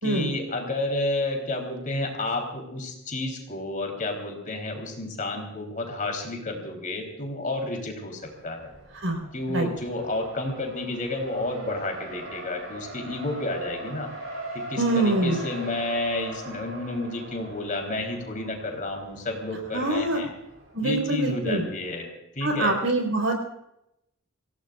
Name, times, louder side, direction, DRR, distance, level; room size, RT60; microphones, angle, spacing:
voice 1, 0.0-8.7 9.3-14.1 14.5-20.3 20.8-22.1 22.4-22.7, left 2 dB, 40° left, 3 dB, 3.8 m, -31 dB
Race car auto racing, 8.2-20.9, right 1 dB, 85° right, 7.7 m, -41 dB
voice 2, 14.8-15.4 19.7-20.2 20.7-21.7 22.4-23.4, right 2 dB, 70° right, 3 dB, 4.8 m, -24 dB
26.5 x 17.0 x 2.5 m, 0.82 s
head